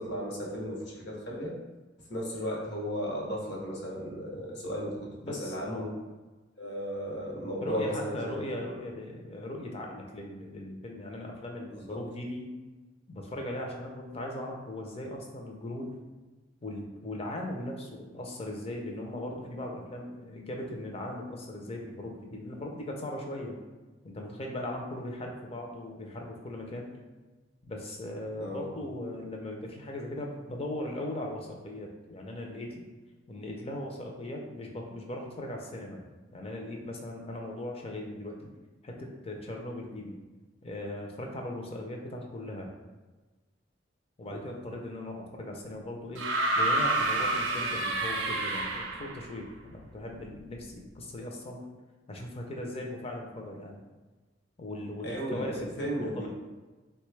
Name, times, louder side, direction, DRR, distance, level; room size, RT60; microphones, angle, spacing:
voice 1, 0.0-1.5 2.1-5.9 6.6-8.3 11.9-12.0 28.4-28.6 44.3-44.4 55.0-56.3, equal, 65° left, -3 dB, 0.8 m, -35 dB
voice 2, 5.2-5.9 7.6-12.5 13.1-15.9 16.6-23.6 24.0-26.9 27.7-32.9 33.3-36.0 36.3-38.5 38.8-40.2 40.6-42.7 44.2-46.3 46.5-51.7 52.1-53.8 54.6-56.3, left 1 dB, 35° left, 1 dB, 0.5 m, -38 dB
sound 1, 46.2-49.2 50.5-50.6, right 2 dB, 75° right, 0.5 m, -28 dB
3.2 x 2.2 x 3.1 m, 1.2 s
head